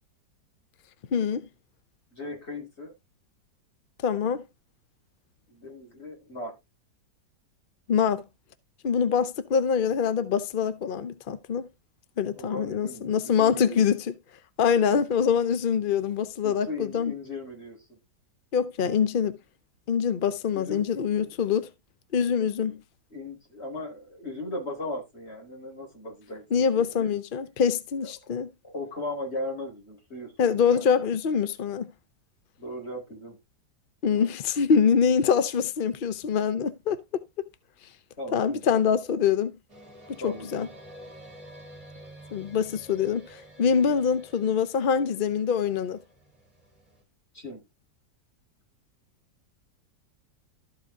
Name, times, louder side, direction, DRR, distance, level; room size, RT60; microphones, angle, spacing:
voice 1, 1.1-1.4 4.0-4.4 7.9-8.2 8.8-11.7 12.2-14.1 14.6-17.1 18.5-19.4 19.9-21.7 22.1-22.8 26.5-28.5 30.4-31.9 34.0-37.0 38.3-39.5 40.2-40.7 42.3-46.0, left 7 dB, 65° left, 0.5 m, -24 dB
voice 2, 2.1-2.9 5.5-6.5 12.4-13.8 16.4-18.0 20.5-21.0 23.1-27.1 28.6-31.1 32.6-33.4 34.1-34.3 38.2-38.6 40.2-40.6 47.3-47.6, left 2 dB, 35° left, 4.4 m, -37 dB
sound 1, 39.7-47.0, right 1 dB, 20° right, 2.9 m, -49 dB
13.0 x 4.9 x 3.6 m
omnidirectional pair, 1.8 m